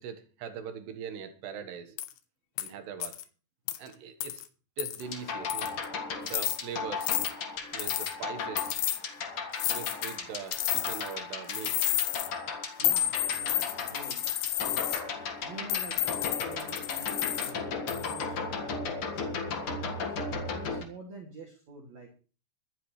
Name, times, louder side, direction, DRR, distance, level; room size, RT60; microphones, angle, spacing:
voice 1, 0.0-2.0 2.6-3.2 3.8-4.4 4.8-5.8 6.2-7.1 7.7-8.8 9.7-11.8, right 7 dB, 75° right, 8 dB, 3.4 m, -41 dB
sound 1, 2.0-2.1 2.6-2.7 3.0-3.2 3.7-3.8 4.2-4.4 4.8-5.0 5.5-5.8 6.3-6.6 7.0-7.3 7.8-8.1 8.6-9.0 9.6-10.2 10.5-11.1 11.5-12.3 12.8-15.0 15.7-17.5 17.9-18.2, left 14 dB, 80° left, 2.8 m, -31 dB
sound 2, 5.0-20.8, left 4 dB, 50° left, 1.6 m, -36 dB
voice 2, 12.8-14.9 15.4-20.2 20.5-22.1, right 3 dB, 45° right, -1 dB, 3.3 m, -47 dB
24.0 x 9.4 x 3.2 m, 0.37 s
omnidirectional pair, 4.9 m